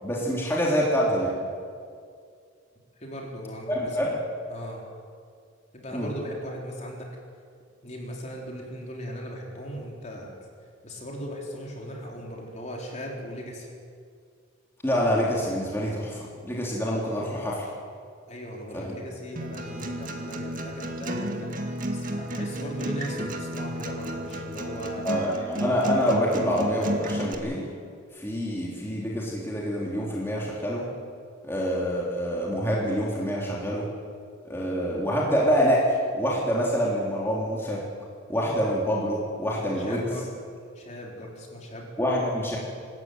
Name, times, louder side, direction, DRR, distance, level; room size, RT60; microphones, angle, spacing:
voice 1, 0.0-1.3 3.7-4.1 5.9-6.1 14.8-17.7 18.7-18.9 25.0-27.7 28.2-30.8 31.4-33.9 34.4-35.8 36.1-37.8 38.3-40.0 42.0-42.6, equal, 10° left, -4 dB, 3.5 m, -26 dB
voice 2, 3.0-4.2 4.5-4.8 5.7-7.1 7.8-10.3 10.8-13.7 18.3-25.1 39.7-40.4 40.7-41.9, equal, 35° left, -1 dB, 4.3 m, -38 dB
Acoustic guitar, 19.4-27.3, right 1 dB, 40° right, 2.2 m, -32 dB
26.0 x 14.0 x 9.4 m, 2.2 s
head